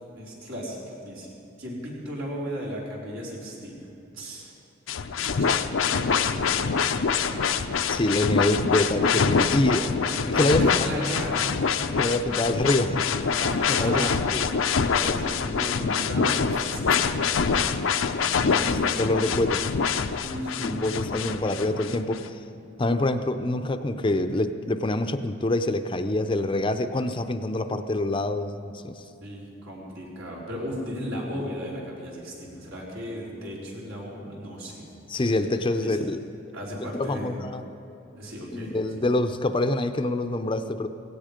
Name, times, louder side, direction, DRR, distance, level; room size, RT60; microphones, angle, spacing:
voice 1, 0.1-1.3 1.6-3.9 4.1-4.5 5.3-5.6 5.8-7.5 8.8-8.9 9.6-9.9 10.3-11.4 13.3-14.2 14.9-17.0 18.3-19.4 20.2-20.9 29.2-34.8 35.1-35.2 35.8-36.0 36.5-37.3 38.1-38.7, equal, 80° right, -5 dB, 4.4 m, -36 dB
sound 1, 4.9-22.2, left 5 dB, 90° left, 0.6 m, -25 dB
voice 2, 7.9-9.9 10.3-11.0 11.9-13.0 13.7-14.5 19.0-19.6 20.6-22.4 22.8-29.0 35.1-36.2 36.8-37.6 38.5-40.9, left 2 dB, 25° left, 8 dB, 0.5 m, -26 dB
17.0 x 16.5 x 5.1 m, 2.7 s
head